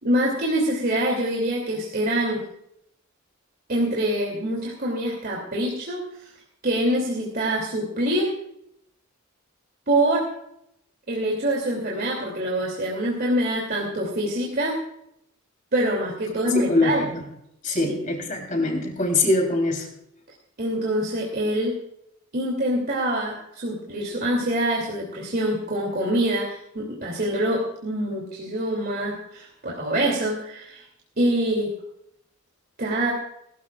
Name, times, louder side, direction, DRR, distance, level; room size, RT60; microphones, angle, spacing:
voice 1, 0.0-2.4 3.7-6.0 6.6-8.3 9.9-10.3 11.1-14.7 15.7-17.0 17.7-18.0 20.6-21.7 22.3-30.8 31.2-31.7 32.8-33.1, right 1 dB, 45° right, -2 dB, 2.9 m, -25 dB
voice 2, 16.7-17.3 17.6-19.9, left 2 dB, 40° left, 2 dB, 3.6 m, -23 dB
21.0 x 14.0 x 2.5 m, 0.76 s
head